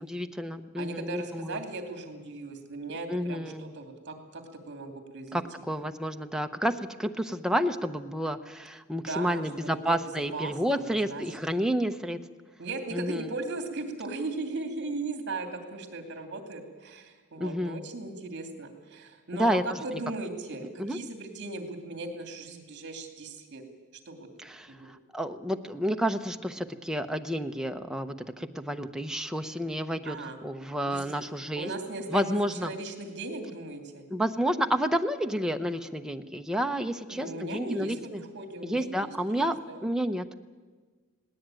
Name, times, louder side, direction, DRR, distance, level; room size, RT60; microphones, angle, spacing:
voice 1, 0.0-1.6 3.1-3.7 5.3-12.2 12.9-13.3 17.4-17.9 19.4-19.8 20.8-21.0 24.4-30.2 30.4-31.7 32.1-32.7 34.1-38.2 38.6-39.5 39.8-40.4, equal, 5° right, 5 dB, 0.8 m, -30 dB
voice 2, 0.8-5.7 8.9-10.0 10.3-11.2 12.6-23.6 24.0-24.3 24.7-24.9 30.0-30.4 30.9-31.2 31.5-34.0 37.1-39.8, right 3 dB, 55° right, 5 dB, 2.7 m, -38 dB
19.5 x 18.0 x 9.0 m, 1.4 s
head